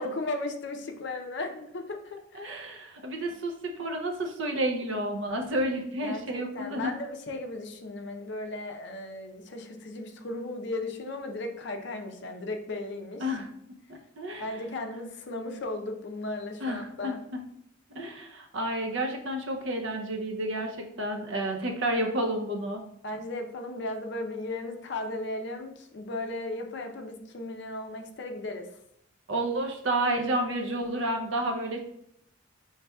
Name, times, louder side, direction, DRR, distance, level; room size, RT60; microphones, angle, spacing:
voice 1, 0.0-2.6 6.0-13.3 14.4-17.2 23.0-28.7, left 2 dB, 60° left, 5 dB, 0.5 m, -36 dB
voice 2, 2.3-6.9 13.2-13.5 13.9-14.4 16.6-17.4 17.9-22.8 29.3-31.8, right 1 dB, 65° right, 3 dB, 0.6 m, -30 dB
5.6 x 3.2 x 2.2 m, 0.74 s
head